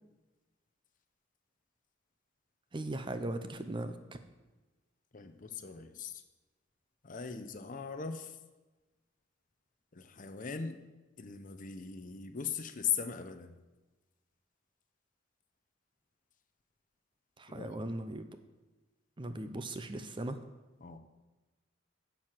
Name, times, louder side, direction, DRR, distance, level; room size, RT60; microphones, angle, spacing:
voice 1, 2.7-4.0 17.4-18.3 19.2-20.4, right 1 dB, 25° right, 9 dB, 0.6 m, -38 dB
voice 2, 5.1-6.2 7.0-8.4 9.9-10.8 11.2-13.6 17.5-17.8 20.8-21.0, left 7 dB, 45° left, 9 dB, 0.7 m, -39 dB
10.5 x 4.7 x 7.5 m, 1.2 s
head